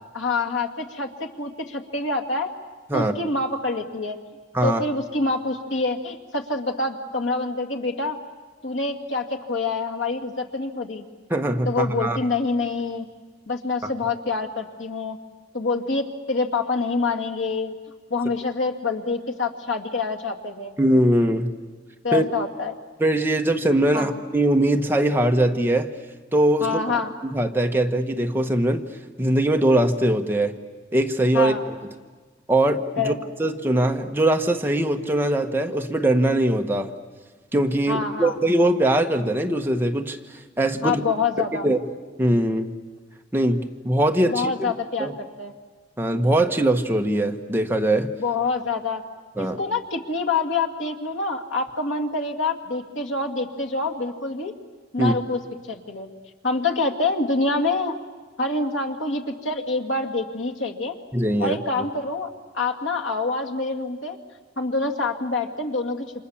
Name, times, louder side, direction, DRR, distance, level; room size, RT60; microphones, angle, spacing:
voice 1, 0.1-2.5 2.9-4.2 4.6-8.2 8.6-11.1 11.7-13.1 13.5-15.2 15.5-17.7 18.1-20.8 22.0-22.8 23.9-24.1 26.6-27.1 31.3-31.6 33.0-33.2 37.9-38.4 40.8-41.7 44.3-45.1 45.4-45.5 48.2-49.0 49.4-54.5 54.9-55.4 55.7-56.1 56.4-57.9 58.4-60.9 61.4-62.3 62.5-64.2 64.6-66.1, left 3 dB, 80° left, 2 dB, 2.3 m, -26 dB
voice 2, 11.3-12.2 20.8-21.5 22.1-22.2 23.0-25.9 26.3-26.8 27.3-28.8 29.2-30.5 30.9-31.5 32.5-33.1 33.4-36.9 37.5-40.2 40.6-41.0 41.6-41.8 42.2-42.7 43.3-44.7 45.0-45.1 46.0-48.1 49.4-49.6 55.0-55.1 61.1-61.6, right 1 dB, 10° right, 4 dB, 1.3 m, -21 dB
29.0 x 26.0 x 7.3 m, 1.4 s
head